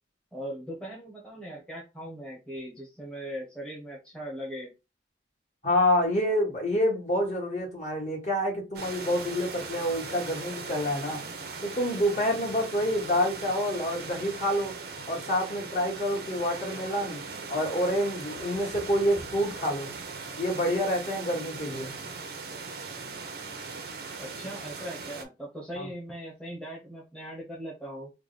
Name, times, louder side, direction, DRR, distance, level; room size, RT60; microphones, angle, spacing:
voice 1, 0.3-4.7 24.2-28.1, equal, 5° left, 0.9 m, -39 dB
voice 2, 5.6-11.2 11.6-14.7 15.1-17.2 17.5-19.9 20.4-21.9 25.7-25.9, equal, 40° left, 1.5 m, -27 dB
sound 1, 8.7-25.2, right 4 dB, 55° right, 0.6 m, -39 dB
3.3 x 2.2 x 3.9 m
head